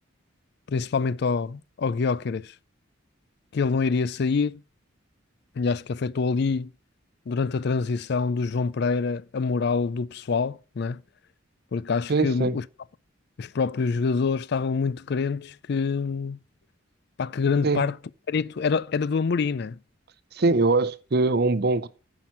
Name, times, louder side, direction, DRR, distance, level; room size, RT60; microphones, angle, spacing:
voice 1, 0.7-2.5 3.5-4.6 5.6-6.7 7.3-11.0 11.7-12.6 13.4-16.4 17.2-17.9 18.3-19.8, left 4 dB, 55° left, 0.4 m, -26 dB
voice 2, 12.1-12.6 17.6-17.9 20.3-21.9, right 3 dB, 50° right, 0.6 m, -22 dB
9.7 x 5.9 x 5.9 m
head